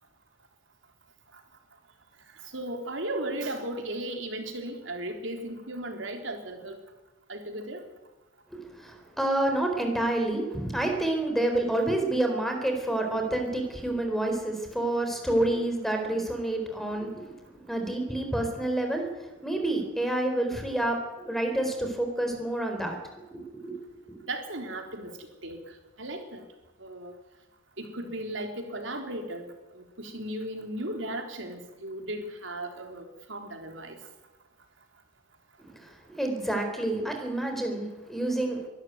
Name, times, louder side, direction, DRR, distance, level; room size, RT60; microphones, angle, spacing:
voice 1, 2.5-6.8 7.3-7.8 24.3-25.1 25.4-25.6 26.0-26.4 26.8-27.1 27.8-29.5 29.8-34.0, right 1 dB, 65° right, 4 dB, 3.7 m, -36 dB
voice 2, 8.5-17.2 17.7-19.0 19.4-23.0 23.3-23.8 24.1-24.2 36.2-38.6, right 1 dB, ahead, 4 dB, 4.1 m, -28 dB
23.0 x 12.5 x 9.4 m, 1.1 s
head